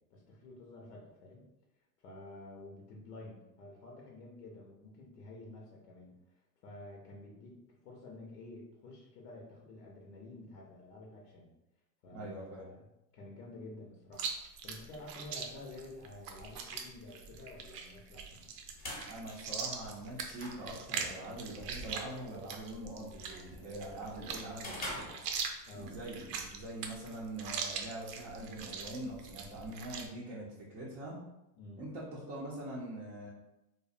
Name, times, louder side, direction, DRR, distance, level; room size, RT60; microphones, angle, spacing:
voice 1, 0.1-1.4 2.0-11.5 12.0-12.9 13.1-14.3 14.6-18.5 25.7-26.0 31.6-31.8, left 2 dB, 85° left, -2 dB, 0.7 m, -50 dB
voice 2, 12.1-12.6 19.1-25.2 25.7-31.2 31.8-33.3, right 1 dB, 25° right, -6 dB, 0.4 m, -43 dB
Chewing mastication, 14.1-30.1, right 6 dB, 80° right, 0.6 m, -42 dB
sound 1, 18.4-25.9, left 1 dB, 20° left, 0.7 m, -48 dB
2.6 x 2.0 x 2.4 m, 0.90 s
hypercardioid pair, 110°, 48 cm